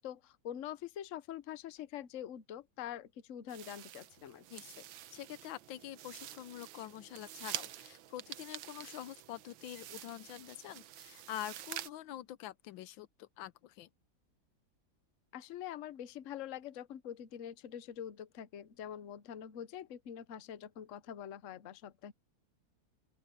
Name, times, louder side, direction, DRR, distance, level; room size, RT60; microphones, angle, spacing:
voice 1, 0.0-4.4 15.3-22.1, left 10 dB, 50° left, 1.0 m, -45 dB
sound 1, 3.5-11.9, right 12 dB, 85° right, 1.5 m, -47 dB
voice 2, 4.5-13.9, left 13 dB, 80° left, 1.4 m, -46 dB
open air
omnidirectional pair, 2.1 m